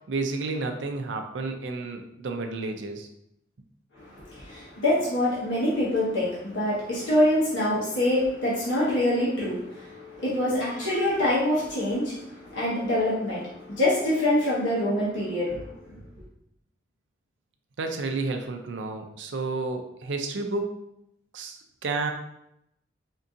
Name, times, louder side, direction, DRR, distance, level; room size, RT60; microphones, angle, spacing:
voice 1, 0.1-3.1 17.8-20.9 21.3-22.1, right 3 dB, 80° right, 5 dB, 0.4 m, -31 dB
voice 2, 4.0-16.0, left 1 dB, 80° left, -8 dB, 1.3 m, -25 dB
4.4 x 2.7 x 2.5 m, 0.79 s
head